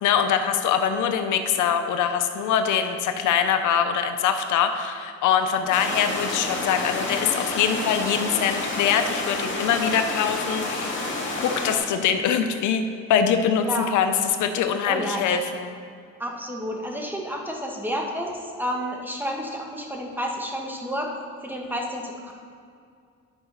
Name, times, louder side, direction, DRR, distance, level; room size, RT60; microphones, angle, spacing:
voice 1, 0.0-10.9 11.4-13.7 13.9-14.1 14.4-15.7, left 8 dB, 90° left, 7 dB, 0.6 m, -23 dB
sound 1, 5.7-11.8, left 2 dB, 40° left, 2.2 m, -29 dB
voice 2, 14.8-15.3 16.2-21.1 21.4-22.3, equal, 5° right, 0 dB, 1.4 m, -30 dB
10.5 x 4.9 x 5.2 m, 2.3 s
cardioid pair, 90°, 29 cm